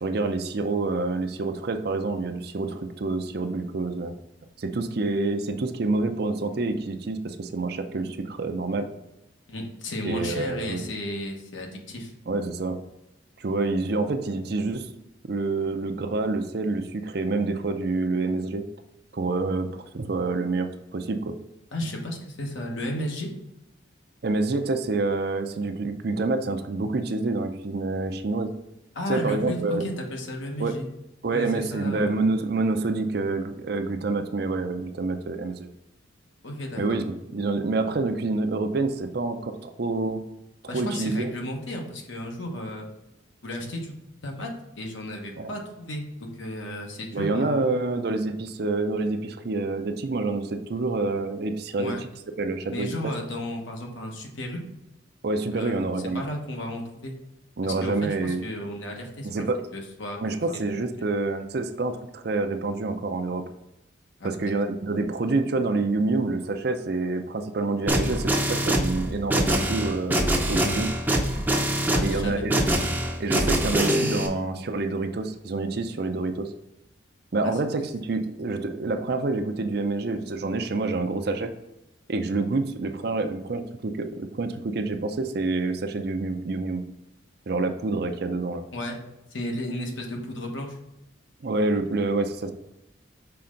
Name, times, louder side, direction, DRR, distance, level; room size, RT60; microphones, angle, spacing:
voice 1, 0.0-4.1 4.6-8.9 10.0-10.8 12.3-12.8 13.4-14.9 15.3-18.7 19.1-21.3 24.2-28.5 29.1-29.8 30.6-30.7 31.2-35.7 36.8-40.2 40.6-41.3 45.4-45.5 47.1-51.9 52.4-52.9 55.2-56.2 57.6-58.4 59.2-59.6 60.2-63.4 64.2-70.9 72.0-72.6 73.2-76.5 77.3-81.5 82.1-86.8 87.5-88.6 91.4-92.5, right 3 dB, 50° right, 7 dB, 0.5 m, -27 dB
voice 2, 9.5-12.1 21.7-23.3 28.9-30.9 31.3-32.3 36.4-37.0 40.7-42.9 43.4-44.5 44.7-47.7 51.8-52.0 52.7-54.7 55.5-57.1 57.6-59.4 59.7-60.2 64.2-64.3 71.9-72.6 77.4-77.6 88.7-89.0 89.3-90.8, left 1 dB, 75° left, 1 dB, 1.2 m, -34 dB
sound 1, 67.9-74.3, right 1 dB, 10° right, 0.6 m, -24 dB
5.7 x 4.3 x 3.8 m, 0.92 s
head